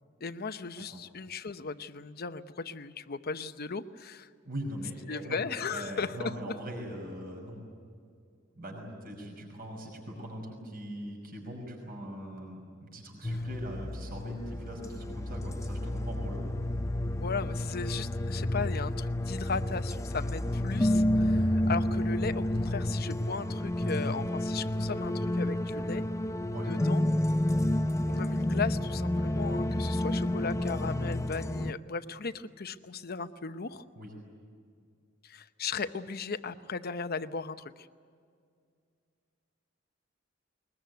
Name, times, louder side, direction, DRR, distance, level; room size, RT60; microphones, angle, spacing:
voice 1, 0.2-4.3 5.1-6.5 13.3-13.4 17.1-26.0 26.6-27.0 28.1-33.8 35.2-37.9, left 4 dB, 50° left, 11 dB, 0.8 m, -36 dB
voice 2, 4.4-5.4 5.7-7.6 8.6-16.5 26.5-26.7 34.0-34.1, equal, 50° right, 1 dB, 5.7 m, -41 dB
sound 1, 13.2-31.7, left 1 dB, 15° left, 0.5 m, -30 dB
21.5 x 21.0 x 9.4 m, 2.2 s
head